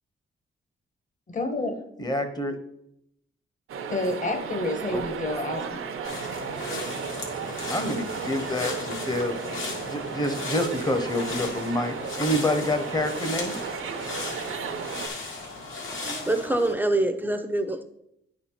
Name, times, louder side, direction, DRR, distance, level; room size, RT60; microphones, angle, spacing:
voice 1, 1.3-1.8 3.9-5.8, left 2 dB, 35° left, 1.1 m, -29 dB
voice 2, 2.0-2.6 4.9-5.0 7.7-9.4 9.9-13.6, left 1 dB, 20° left, 0.9 m, -27 dB
sound 1, 3.7-15.1, right 6 dB, 80° right, 0.8 m, -34 dB
sound 2, 6.0-16.7, left 3 dB, 70° left, 1.9 m, -36 dB
voice 3, 16.0-17.8, right 2 dB, 10° right, 0.6 m, -25 dB
9.7 x 4.3 x 4.4 m
wide cardioid pair, 130°, 21 cm